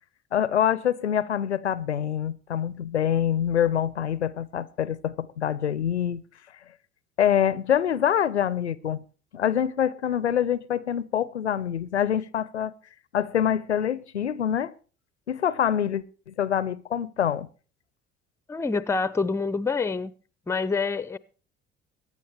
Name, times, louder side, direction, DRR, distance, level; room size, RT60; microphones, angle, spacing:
voice 1, 0.3-6.2 7.2-9.0 9.3-12.7 13.1-14.7 15.3-17.5, left 9 dB, 85° left, 0.5 m, -25 dB
voice 2, 18.5-20.1 20.5-21.2, left 4 dB, 10° left, 0.5 m, -26 dB
22.0 x 9.5 x 3.3 m
figure-of-eight pair, 50°, 33 cm